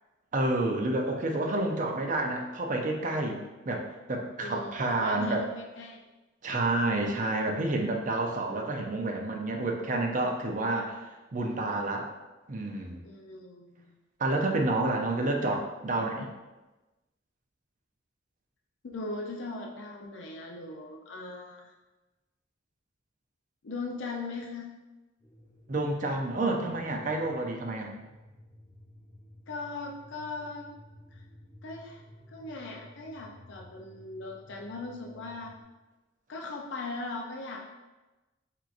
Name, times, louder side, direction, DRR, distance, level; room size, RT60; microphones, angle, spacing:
voice 1, 0.3-5.5 6.4-11.0 11.3-12.1 12.5-13.0 14.2-16.3 25.7-27.9, right 2 dB, 40° right, 2 dB, 0.5 m, -29 dB
voice 2, 4.4-6.0 13.0-14.0 18.8-21.7 23.6-24.8 29.5-30.7 31.1-31.2 31.6-32.0 32.3-35.5 36.3-37.7, left 3 dB, 65° left, 1 dB, 0.5 m, -39 dB
sound 1, 25.2-35.6, left 1 dB, 15° left, 1.1 m, -54 dB
4.5 x 3.7 x 2.5 m, 1.1 s
head